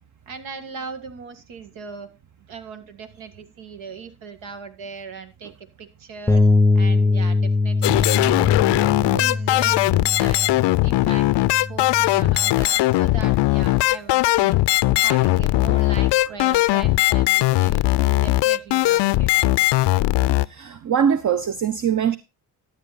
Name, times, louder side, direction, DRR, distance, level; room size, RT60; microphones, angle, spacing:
voice 1, 0.3-2.1 2.5-6.4 6.8-8.7 9.1-10.5 10.8-11.3 11.7-14.6 15.0-20.1, right 5 dB, 75° right, 1.8 m, -39 dB
Bass guitar, 6.3-12.5, left 3 dB, ahead, 0.7 m, -22 dB
sound 1, 7.8-20.5, left 18 dB, 60° left, 0.5 m, -19 dB
voice 2, 20.5-22.2, right 8 dB, 40° right, 0.8 m, -22 dB
12.0 x 8.3 x 4.0 m
hypercardioid pair, 50°, 47 cm